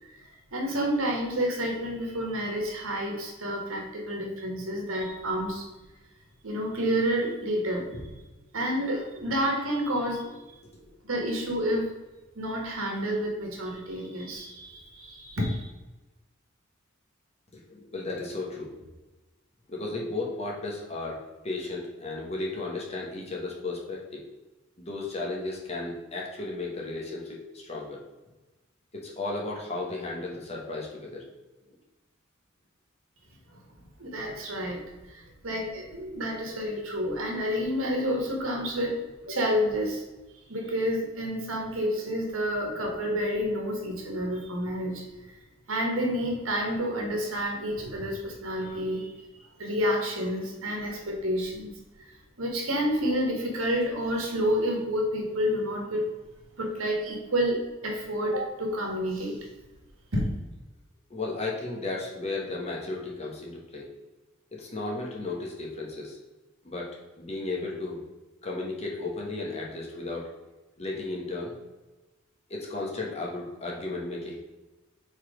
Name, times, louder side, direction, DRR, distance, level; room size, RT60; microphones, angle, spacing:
voice 1, 0.5-5.6 6.4-7.9 8.5-10.5 11.0-11.9 12.3-15.7 34.0-39.0 39.3-40.0 40.5-45.1 45.7-49.1 49.3-51.7 52.4-56.0 56.5-59.4 60.1-60.2, equal, 85° right, 0 dB, 1.7 m, -29 dB
voice 2, 17.5-18.8 19.7-24.2 24.8-28.0 28.9-31.3 61.1-63.9 64.5-66.2 66.6-68.0 68.4-70.3 70.8-71.5 72.5-74.4, left 2 dB, 30° left, -2 dB, 1.2 m, -34 dB
4.9 x 4.1 x 5.1 m, 1.1 s
head